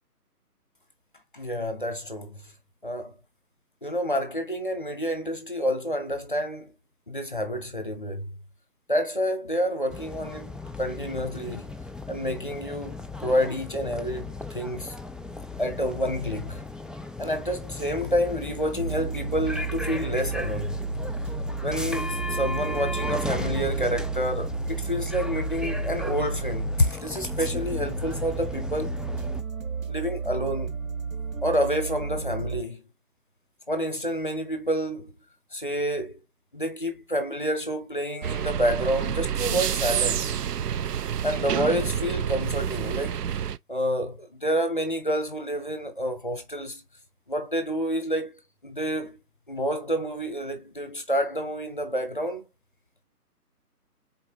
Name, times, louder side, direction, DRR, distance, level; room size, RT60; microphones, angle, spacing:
voice 1, 1.3-2.5 2.8-3.2 3.8-6.7 7.1-8.4 8.9-10.5 10.8-11.7 12.1-14.9 15.6-16.6 17.2-20.8 21.6-29.0 29.9-30.7 31.4-32.8 33.7-35.2 35.5-36.2 36.5-40.3 41.2-43.2 43.7-46.8 47.3-49.2 49.5-52.5, equal, 35° left, 0.8 m, -28 dB
sound 1, 9.9-29.4, left 3 dB, ahead, 0.3 m, -36 dB
sound 2, 18.8-32.6, right 4 dB, 55° right, 1.1 m, -32 dB
sound 3, 38.2-43.6, right 9 dB, 75° right, 0.6 m, -28 dB
4.3 x 4.2 x 2.8 m
hypercardioid pair, 175°, 48 cm